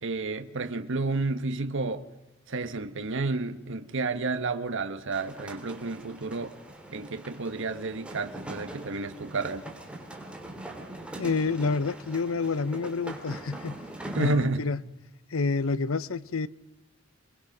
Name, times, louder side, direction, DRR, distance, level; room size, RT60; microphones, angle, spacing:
voice 1, 0.0-2.0 2.5-6.5 6.9-9.6 14.1-14.6, right 3 dB, 65° right, 1.2 m, -30 dB
sound 1, 5.1-14.3, right 1 dB, 5° right, 3.3 m, -42 dB
voice 2, 11.2-13.8 14.2-14.8 15.3-16.5, left 4 dB, 75° left, 0.8 m, -28 dB
27.0 x 21.5 x 5.9 m
head